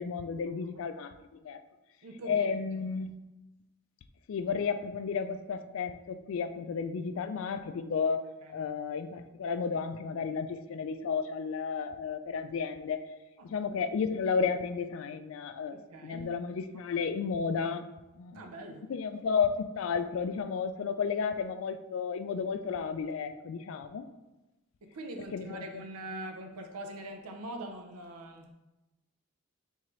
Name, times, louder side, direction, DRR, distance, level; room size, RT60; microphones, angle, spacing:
voice 1, 0.0-1.6 2.3-3.1 4.3-13.0 13.4-15.8 16.0-17.9 18.2-18.5 18.9-24.1 25.3-25.7, left 5 dB, 60° left, 0.3 m, -32 dB
voice 2, 2.0-2.8 8.4-8.7 13.4-13.5 15.7-16.3 18.3-18.9 24.8-28.5, right 1 dB, 90° right, 0.6 m, -43 dB
4.5 x 3.7 x 3.1 m
head